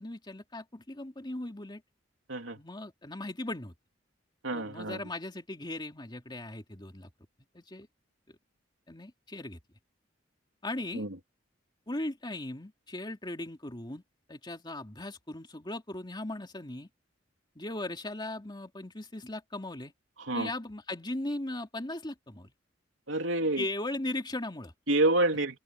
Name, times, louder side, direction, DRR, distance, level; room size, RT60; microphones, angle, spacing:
voice 1, 0.0-1.8 2.5-3.7 4.5-7.1 7.5-7.9 8.3-8.4 8.9-9.6 10.6-11.1 11.9-14.0 14.3-16.9 17.5-19.9 20.3-22.5 23.6-24.7, left 1 dB, 25° left, 2.7 m, -38 dB
voice 2, 4.4-5.0 10.9-11.1 20.3-20.5 23.1-23.6 24.9-25.6, right 2 dB, 90° right, 3.2 m, -28 dB
open air
head